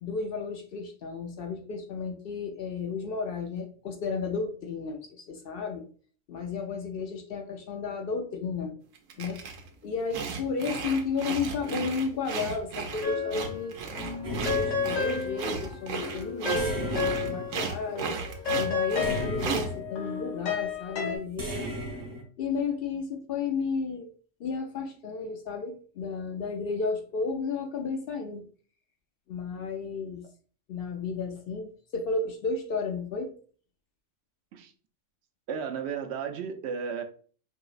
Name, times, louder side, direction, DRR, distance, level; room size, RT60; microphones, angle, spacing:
voice 1, 0.0-5.9 6.3-8.8 9.2-9.4 9.8-18.2 18.6-21.7 22.4-24.1 24.4-28.4 29.3-30.2 30.7-33.3, left 4 dB, 60° left, 4 dB, 0.6 m, -33 dB
sound 1, 9.0-9.7 10.1-19.7, right 5 dB, 90° right, 1.0 m, -35 dB
sound 2, 13.0-13.7 14.0-17.7 18.0-21.2, left 5 dB, 85° left, 1.2 m, -32 dB
sound 3, 14.2-15.5 16.6-18.2 19.0-20.2 21.4-22.2, equal, 25° right, 0.5 m, -36 dB
voice 2, 35.5-37.0, right 6 dB, 65° right, 6 dB, 0.8 m, -33 dB
4.7 x 2.9 x 2.4 m, 0.43 s
omnidirectional pair, 1.3 m